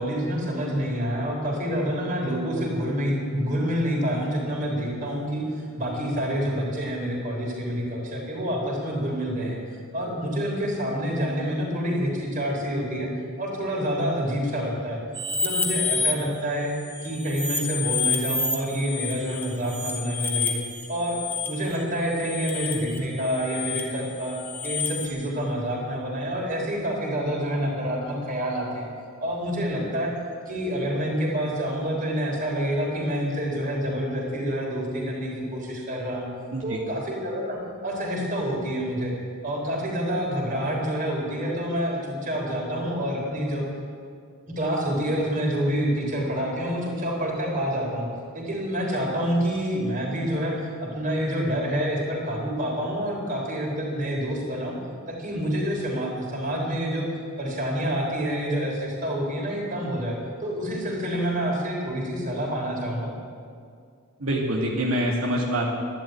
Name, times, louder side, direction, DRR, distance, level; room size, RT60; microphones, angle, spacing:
voice 1, 0.0-9.6 9.9-13.1 13.4-15.0 15.4-16.7 17.0-20.6 20.9-21.2 21.5-24.4 24.6-28.9 29.2-30.1 30.5-36.3 36.6-39.1 39.4-43.6 44.6-48.1 48.3-54.8 55.1-57.1 57.4-63.1, equal, 40° right, -1 dB, 3.8 m, -27 dB
sound 1, 15.1-16.1 16.6-25.1, left 5 dB, 10° left, 1.4 m, -29 dB
voice 2, 36.5-36.8 64.2-65.7, right 1 dB, 85° right, -3 dB, 2.2 m, -25 dB
12.0 x 11.5 x 9.0 m, 2.2 s
head